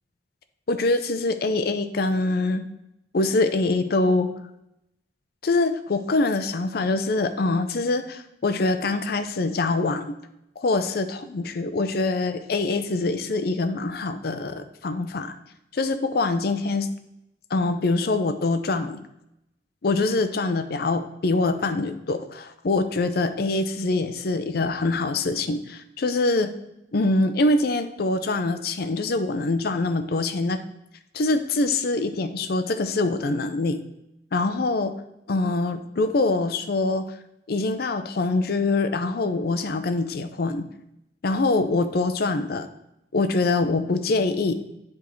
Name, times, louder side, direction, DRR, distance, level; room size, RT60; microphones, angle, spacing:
voice 1, 0.7-2.6 3.1-4.3 5.4-10.2 10.6-15.3 15.7-16.9 17.5-19.0 19.8-26.5 26.9-30.6 31.1-33.8 34.3-34.9 35.3-37.1 37.5-40.7 41.2-42.7 43.1-44.5, left 3 dB, 55° left, 10 dB, 0.5 m, -24 dB
10.0 x 3.5 x 3.1 m, 0.84 s
head